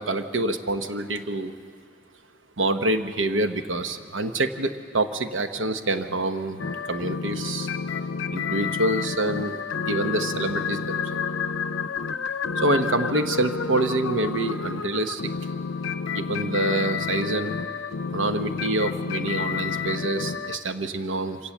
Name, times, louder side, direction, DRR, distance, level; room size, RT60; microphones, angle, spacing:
voice 1, 0.0-1.5 2.6-6.6 6.8-7.7 8.3-9.6 9.9-11.2 12.6-15.3 16.1-17.5 18.1-21.4, right 2 dB, 75° right, 8 dB, 1.1 m, -26 dB
sound 1, 6.6-20.6, left 5 dB, 80° left, 0.6 m, -30 dB
26.0 x 17.0 x 7.3 m, 2.2 s
head